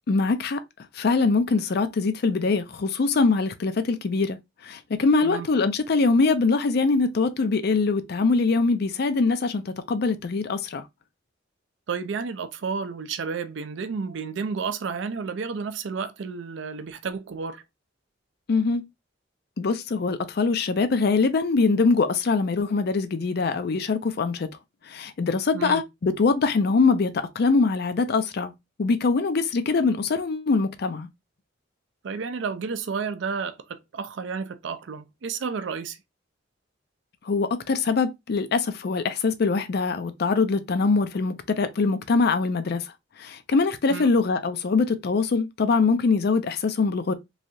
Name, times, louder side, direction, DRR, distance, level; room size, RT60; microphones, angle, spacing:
voice 1, 0.1-0.6 0.9-4.4 4.6-10.8 18.5-18.8 19.6-24.5 24.8-28.5 28.8-31.1 37.2-47.1, left 4 dB, 55° left, 0.4 m, -23 dB
voice 2, 11.9-17.6 25.5-25.8 32.0-36.0 43.9-44.1, right 5 dB, 65° right, 0.4 m, -31 dB
3.2 x 2.7 x 2.5 m
head